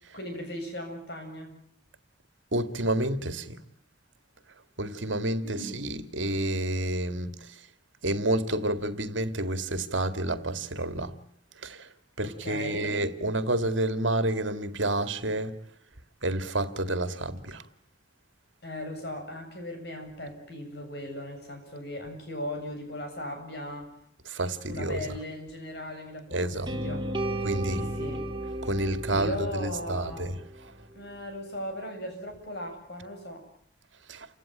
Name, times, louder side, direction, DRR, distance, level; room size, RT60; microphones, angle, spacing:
voice 1, 0.1-1.6 5.4-5.9 12.2-13.0 18.6-23.9 24.7-27.1 27.7-28.3 29.1-30.3 30.9-33.5, left 1 dB, 55° left, 7.6 m, -38 dB
voice 2, 2.5-3.6 4.8-7.4 8.0-11.1 11.6-11.8 12.2-15.6 16.2-17.6 24.3-25.0 26.3-26.7 27.4-27.9 28.6-30.3 34.1-34.3, right 1 dB, 80° right, 2.2 m, -29 dB
sound 1, 26.7-30.7, right 1 dB, 25° right, 3.6 m, -34 dB
29.5 x 17.0 x 9.0 m
head